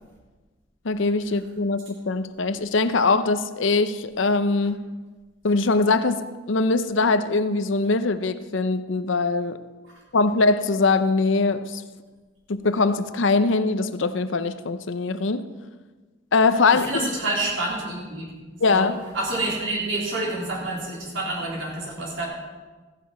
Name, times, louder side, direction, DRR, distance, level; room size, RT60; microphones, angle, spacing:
voice 1, 0.8-4.8 5.4-9.6 10.1-11.8 12.5-15.5 16.3-17.0 18.6-19.0, left 3 dB, 75° left, 12 dB, 0.7 m, -22 dB
voice 2, 16.7-18.3 18.7-18.9 19.1-22.2, right 2 dB, 70° right, -3 dB, 3.4 m, -28 dB
15.0 x 10.5 x 4.3 m, 1.3 s
head